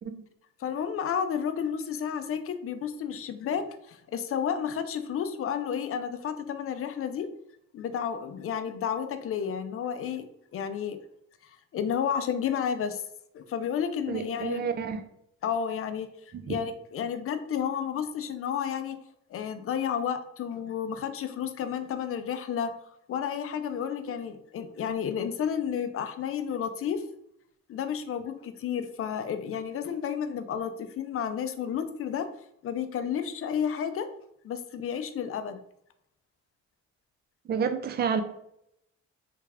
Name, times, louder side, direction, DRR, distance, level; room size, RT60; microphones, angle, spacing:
voice 1, 0.6-7.3 7.7-10.2 10.5-11.0 11.7-13.0 13.3-14.7 15.4-19.0 19.3-22.7 23.1-27.0 27.7-32.3 32.6-34.1 34.4-35.6, left 8 dB, 50° left, 9 dB, 0.4 m, -31 dB
voice 2, 14.1-15.0 16.3-16.5 37.5-38.2, right 6 dB, 35° right, 8 dB, 0.4 m, -29 dB
3.2 x 2.3 x 3.3 m, 0.75 s
cardioid pair, 90°, 30 cm